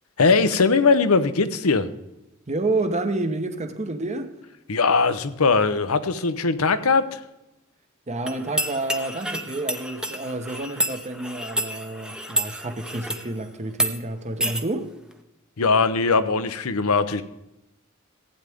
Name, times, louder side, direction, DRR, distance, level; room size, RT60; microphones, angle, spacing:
voice 1, 0.2-1.9 4.7-7.0 15.6-17.2, left 4 dB, 80° left, 0.8 m, -20 dB
voice 2, 2.5-4.4 8.1-14.9, right 2 dB, 35° right, 1.0 m, -29 dB
sound 1, 8.3-13.3 13.7-13.9 14.4-14.6, right 1 dB, 5° right, 0.8 m, -29 dB
15.5 x 9.0 x 3.6 m
head